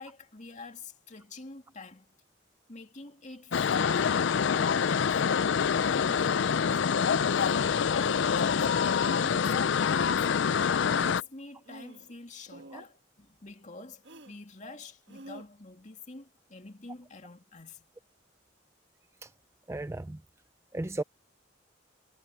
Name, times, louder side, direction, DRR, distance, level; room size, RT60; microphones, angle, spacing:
voice 1, 0.0-2.1 2.7-5.5 5.8-7.3 7.8-10.3 10.9-17.9, left 3 dB, 40° left, 2.4 m, -46 dB
sound 1, 3.5-11.2, left 6 dB, 65° left, 0.4 m, -26 dB
sound 2, 6.2-6.3 7.3-7.6 8.3-8.8 10.5-10.6 10.8-11.3 11.6-12.2 12.5-12.9 14.0-14.4 15.1-15.5, right 2 dB, 60° right, 1.6 m, -50 dB
voice 2, 19.7-20.2 20.7-21.0, right 2 dB, 15° right, 0.4 m, -35 dB
head